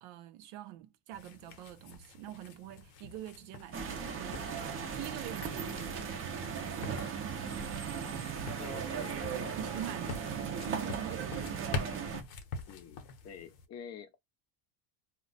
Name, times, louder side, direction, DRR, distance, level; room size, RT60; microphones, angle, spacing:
voice 1, 0.0-4.6 4.9-7.6 8.9-11.8, right 12 dB, 90° right, 0.5 m, -46 dB
sound 1, 1.1-13.7, left 4 dB, 70° left, 0.8 m, -45 dB
sound 2, 3.7-12.2, right 6 dB, 30° right, 0.4 m, -37 dB
voice 2, 8.6-9.6 12.7-14.2, left 8 dB, 35° left, 0.5 m, -48 dB
2.2 x 2.1 x 3.7 m
cardioid pair, 145°, 46 cm